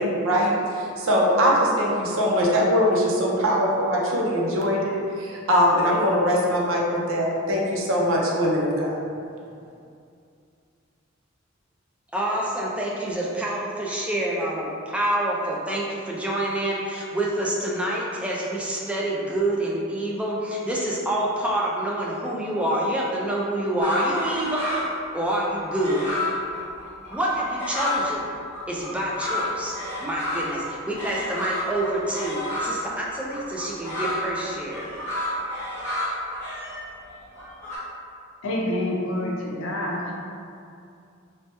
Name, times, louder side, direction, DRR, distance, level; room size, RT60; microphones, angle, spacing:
voice 1, 0.0-9.0, equal, 85° right, -3 dB, 0.5 m, -22 dB
voice 2, 12.1-24.7 25.1-26.1 27.1-28.3 28.7-34.9, right 1 dB, 5° right, -4 dB, 0.3 m, -27 dB
sound 1, 23.8-25.0 25.3-28.1 28.5-32.8 33.3-37.8, left 1 dB, 10° left, 0.8 m, -30 dB
voice 3, 38.4-40.1, left 1 dB, 80° left, -3 dB, 0.5 m, -27 dB
3.2 x 2.1 x 2.8 m, 2.5 s
head